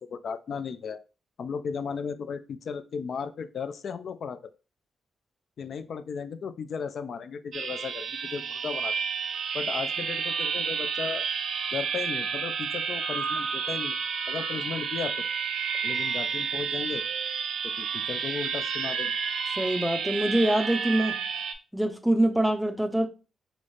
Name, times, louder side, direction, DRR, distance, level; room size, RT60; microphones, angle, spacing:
voice 1, 0.1-1.0 1.4-4.5 5.6-8.9 9.5-11.3 11.7-14.0 14.3-15.2 15.8-17.0 17.8-19.1, left 6 dB, 65° left, 0.3 m, -35 dB
sound 1, 7.5-21.5, right 6 dB, 70° right, 0.4 m, -30 dB
voice 2, 19.6-21.2 21.7-23.1, right 1 dB, 5° right, 0.4 m, -24 dB
3.9 x 2.0 x 3.2 m
supercardioid pair, 55°, 0 cm